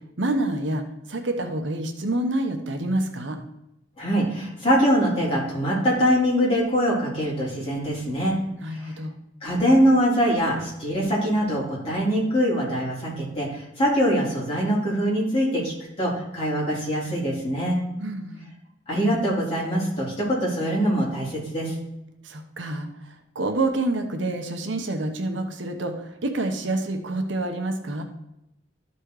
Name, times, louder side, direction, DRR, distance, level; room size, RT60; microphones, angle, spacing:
voice 1, 0.2-3.4 8.6-9.1 18.0-18.5 22.2-28.0, right 2 dB, 75° right, 5 dB, 1.1 m, -28 dB
voice 2, 4.0-8.4 8.7-8.9 9.4-17.8 18.9-21.7, equal, 30° left, -7 dB, 3.6 m, -23 dB
12.5 x 4.3 x 4.8 m, 0.85 s
head